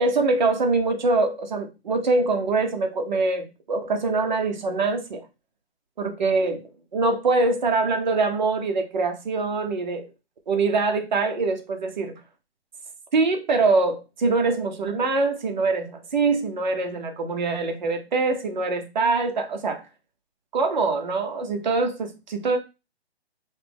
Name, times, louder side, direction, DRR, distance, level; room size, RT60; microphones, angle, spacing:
voice 1, 0.0-5.2 6.0-6.6 6.9-10.1 10.5-12.1 13.1-19.8 20.5-22.6, right 3 dB, 45° right, 0.9 m, -24 dB
5.7 x 2.2 x 3.4 m
hypercardioid pair, 170°, 33 cm